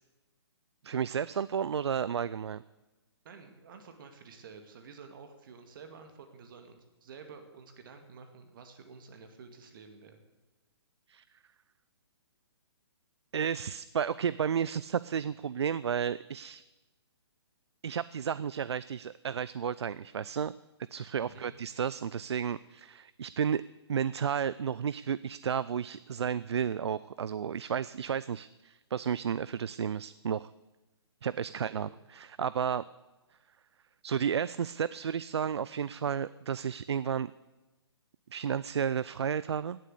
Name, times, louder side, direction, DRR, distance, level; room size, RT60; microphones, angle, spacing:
voice 1, 0.8-2.6 11.1-11.2 13.3-16.6 17.8-20.5 20.9-23.6 23.9-30.5 31.2-32.8 34.0-37.3 38.3-39.8, right 7 dB, 75° right, 18 dB, 0.4 m, -32 dB
voice 2, 3.2-10.2 21.2-21.5 31.6-31.9, right 5 dB, 50° right, 6 dB, 2.2 m, -50 dB
18.0 x 7.6 x 8.3 m, 1.1 s
hypercardioid pair, 140°, 14 cm